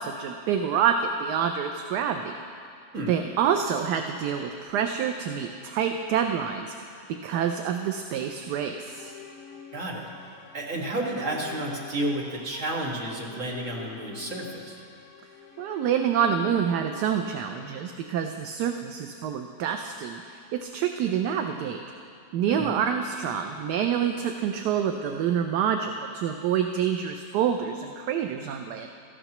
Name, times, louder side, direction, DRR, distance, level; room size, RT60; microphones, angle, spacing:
voice 1, 0.0-2.3 3.1-9.1 15.6-21.8 22.3-28.9, right 8 dB, 75° right, 5 dB, 1.2 m, -27 dB
sound 1, 8.4-18.6, left 7 dB, 75° left, 1.6 m, -48 dB
voice 2, 9.7-10.1 10.5-14.8 22.5-22.6, right 1 dB, 45° right, -3 dB, 2.1 m, -31 dB
17.5 x 14.0 x 3.0 m, 2.4 s
omnidirectional pair, 1.8 m